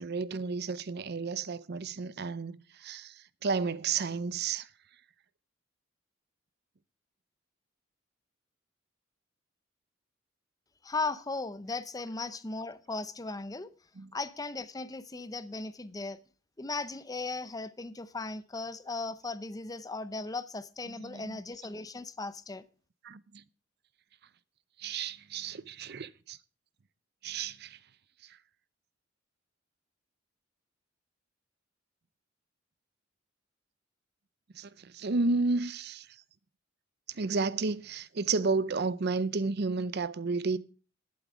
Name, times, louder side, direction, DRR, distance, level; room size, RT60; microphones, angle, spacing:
voice 1, 0.0-4.7 14.0-14.1 21.0-21.4 23.0-23.4 24.8-26.4 27.2-27.8 28.2-28.4 34.5-36.1 37.1-40.6, right 4 dB, 55° right, 0.6 m, -32 dB
voice 2, 10.8-13.7 14.1-16.2 16.6-22.6, left 3 dB, 20° left, 0.6 m, -37 dB
11.5 x 8.0 x 6.0 m
head